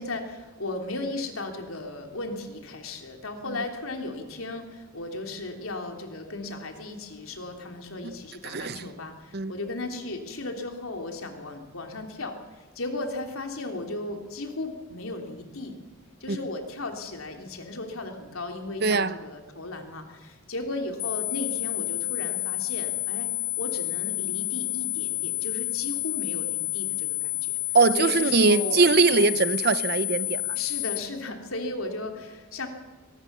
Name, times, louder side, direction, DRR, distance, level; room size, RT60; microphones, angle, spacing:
voice 1, 0.0-15.8 16.2-23.3 23.6-27.6 28.0-29.3 30.5-32.7, left 2 dB, 85° left, 3.2 m, -36 dB
voice 2, 8.4-8.9 9.3-9.5 16.3-16.4 18.8-19.2 27.7-30.6, right 4 dB, 50° right, 0.8 m, -22 dB
sound 1, 21.0-31.0, left 25 dB, 50° left, 0.6 m, -30 dB
22.5 x 19.0 x 6.9 m
head